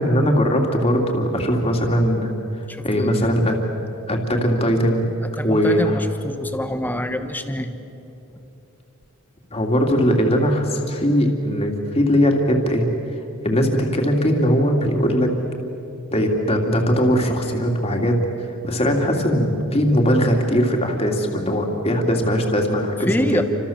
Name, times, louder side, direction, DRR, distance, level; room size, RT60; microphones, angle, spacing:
voice 1, 0.0-2.3 2.8-3.6 4.1-5.1 5.4-6.0 9.5-12.8 13.4-15.3 16.1-18.2 18.6-23.4, equal, 25° left, 2 dB, 2.8 m, -20 dB
voice 2, 2.7-3.4 5.4-7.7 23.1-23.4, equal, 10° left, 8 dB, 1.4 m, -26 dB
29.5 x 26.0 x 7.3 m, 2.9 s
head